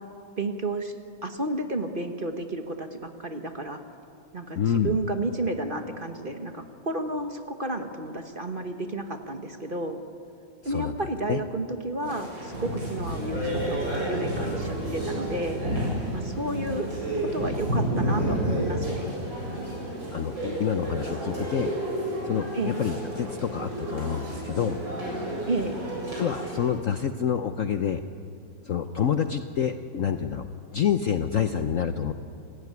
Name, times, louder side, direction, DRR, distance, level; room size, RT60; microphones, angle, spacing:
voice 1, 0.4-0.9 1.2-3.8 4.3-10.0 10.6-15.6 16.1-16.9 17.2-19.2 22.5-22.8 25.5-25.7, right 2 dB, 30° right, 6 dB, 1.2 m, -31 dB
voice 2, 4.6-5.0 10.6-10.9 11.3-11.4 20.1-21.7 22.2-24.8 26.2-28.0 28.6-32.1, left 8 dB, 60° left, 8 dB, 0.9 m, -27 dB
sound 1, 12.0-26.7, right 1 dB, 85° right, 8.4 m, -30 dB
28.5 x 16.5 x 9.5 m, 2.5 s
omnidirectional pair, 2.0 m